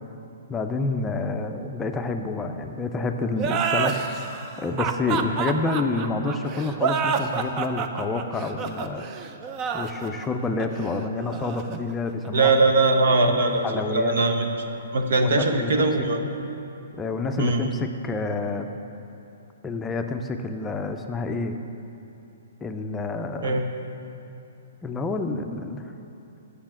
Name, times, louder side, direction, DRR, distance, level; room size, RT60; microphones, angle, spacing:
voice 1, 0.5-9.1 9.7-12.5 13.6-14.2 15.2-15.9 17.0-18.7 19.6-21.6 22.6-23.6 24.8-25.8, left 3 dB, 15° left, 5 dB, 0.5 m, -28 dB
sound 1, 3.4-12.6, right 6 dB, 30° right, 0.5 m, -28 dB
voice 2, 12.3-14.7 14.9-16.2 17.4-17.7 23.4-23.7, right 3 dB, 65° right, 4 dB, 0.9 m, -21 dB
7.3 x 6.8 x 7.4 m, 2.8 s
hypercardioid pair, 125°, 0 cm